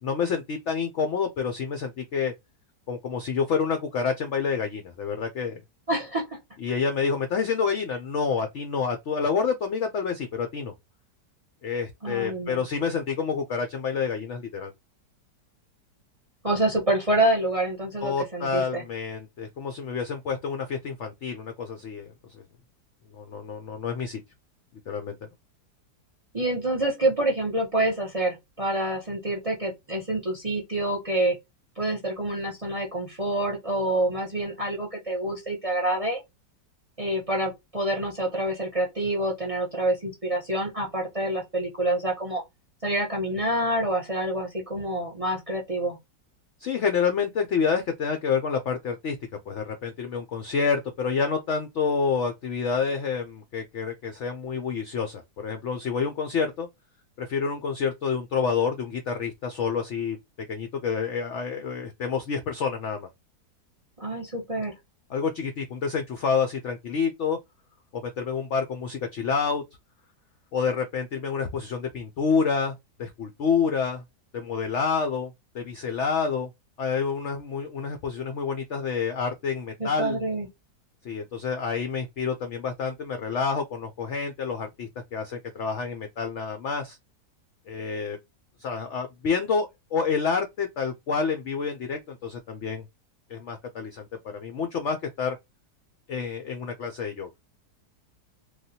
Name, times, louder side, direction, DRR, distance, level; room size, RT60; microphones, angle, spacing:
voice 1, 0.0-2.3 2.9-5.6 6.6-10.7 11.6-14.7 18.0-22.4 23.1-24.2 24.9-25.3 46.6-49.2 49.5-56.7 57.2-60.2 60.5-63.1 65.1-67.4 67.9-69.6 70.5-74.0 74.3-76.5 76.8-80.2 81.0-87.0 87.7-88.2 88.6-92.8 93.3-95.4 96.1-97.3, left 5 dB, 75° left, 0.6 m, -28 dB
voice 2, 5.9-6.4 12.0-12.6 16.4-18.8 26.3-31.3 31.8-36.2 37.0-42.4 42.8-46.0 64.0-64.8 79.8-80.5, right 1 dB, 30° right, 0.7 m, -27 dB
3.2 x 2.3 x 2.7 m
omnidirectional pair, 1.8 m